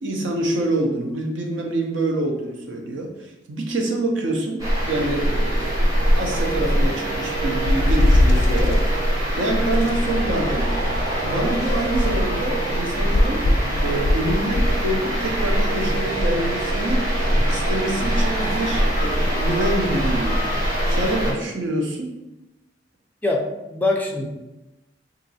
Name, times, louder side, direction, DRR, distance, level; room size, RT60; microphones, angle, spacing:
voice 1, 0.0-8.8 9.4-10.8 11.2-13.4 13.8-17.0 17.5-20.4 20.9-22.1, right 1 dB, 70° right, 2 dB, 0.6 m, -26 dB
sound 1, 4.6-21.3, equal, 20° right, 0.8 m, -23 dB
sound 2, 7.6-8.9 9.8-11.1 11.7-12.4 13.1-14.8, left 1 dB, 85° left, 0.4 m, -20 dB
voice 2, 23.2-24.3, left 2 dB, 10° left, 0 dB, 0.4 m, -24 dB
2.8 x 2.5 x 4.0 m, 0.96 s
head